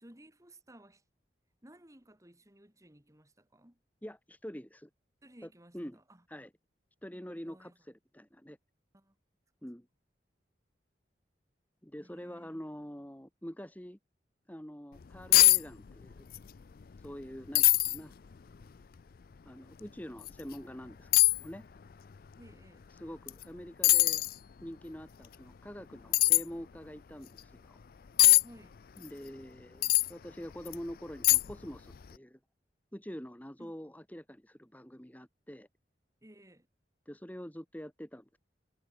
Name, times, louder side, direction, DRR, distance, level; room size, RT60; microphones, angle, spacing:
voice 1, 0.0-1.0 1.6-3.8 5.2-6.2 7.3-7.8 8.9-9.1 12.0-12.6 22.4-22.9 28.4-28.7 33.6-33.7 36.2-36.7, right 1 dB, 20° right, 3.4 m, -57 dB
voice 2, 4.0-4.9 5.4-6.0 6.3-6.5 7.0-8.6 9.6-9.9 11.8-14.0 14.5-16.3 17.0-18.1 19.5-21.1 21.4-21.7 23.0-24.2 24.6-27.8 29.0-32.4 32.9-35.7 37.1-38.4, equal, 10° left, 2.0 m, -45 dB
sound 1, 15.0-15.1 15.3-15.6 15.9-16.4 16.8-16.9 17.5-18.0 18.6-18.7 20.2-20.3 21.1-21.4 23.3-23.4 23.8-24.3 26.1-26.4 28.2-28.4 29.8-30.1 30.7-30.8 31.2-31.6 31.9-32.1, left 19 dB, 55° left, 0.4 m, -22 dB
head